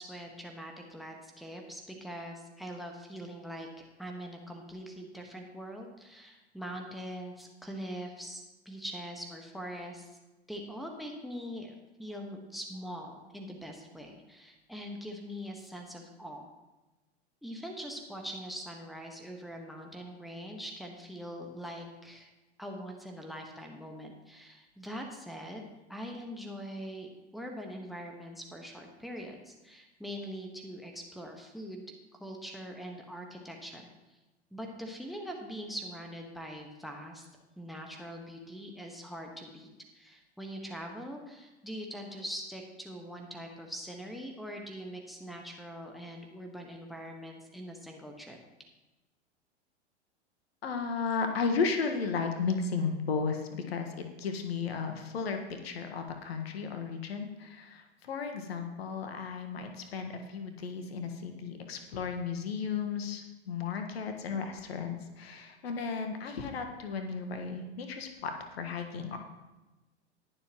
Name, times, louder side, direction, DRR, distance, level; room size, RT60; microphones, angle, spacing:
voice 1, 0.0-3.7 4.0-10.2 10.5-11.7 12.0-16.5 17.4-22.3 22.6-25.6 25.9-33.8 34.1-34.2 34.5-37.3 37.6-39.7 39.9-48.4, equal, ahead, 3 dB, 1.4 m, -42 dB
voice 2, 50.6-69.2, left 5 dB, 60° left, 5 dB, 1.6 m, -34 dB
20.0 x 7.1 x 3.0 m, 1.1 s
figure-of-eight pair, 90°, 34 cm